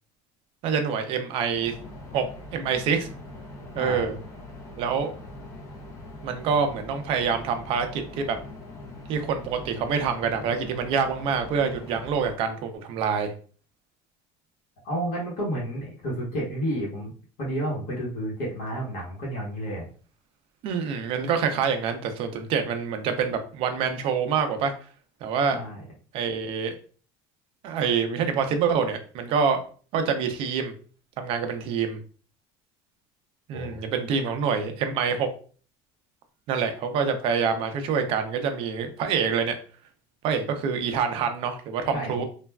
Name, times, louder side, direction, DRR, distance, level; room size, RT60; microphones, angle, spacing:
voice 1, 0.6-1.8 2.1-2.3 2.5-3.1 3.7-4.1 4.8-5.1 6.2-8.4 9.1-13.3 20.6-24.7 25.2-25.6 26.1-26.8 27.6-29.6 29.9-30.7 31.2-32.0 33.5-35.3 36.5-39.6 40.2-42.2, right 6 dB, 45° right, 7 dB, 0.5 m, -26 dB
sound 1, 1.5-12.4, left 1 dB, 25° left, 0.5 m, -42 dB
voice 2, 3.7-4.1 14.8-17.1 17.4-19.9 25.5-25.8 33.5-33.8 41.9-42.2, right 1 dB, 65° left, -4 dB, 1.0 m, -31 dB
3.2 x 2.3 x 2.2 m, 0.40 s
cardioid pair, 170°, 13 cm